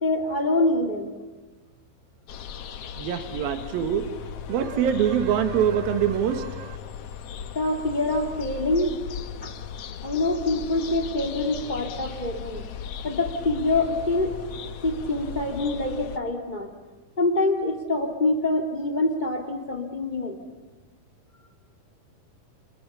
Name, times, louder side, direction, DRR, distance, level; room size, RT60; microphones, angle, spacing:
voice 1, 0.0-1.2 7.5-9.0 9.4-9.5 10.0-12.6 13.0-14.4 14.8-16.7 17.2-20.4, left 2 dB, 15° left, 4 dB, 2.3 m, -25 dB
sound 1, 2.3-16.2, left 7 dB, 65° left, 1.6 m, -37 dB
voice 2, 3.0-4.1 4.5-6.8, right 9 dB, 90° right, 9 dB, 3.3 m, -24 dB
30.0 x 27.5 x 6.9 m, 1.2 s
omnidirectional pair, 4.1 m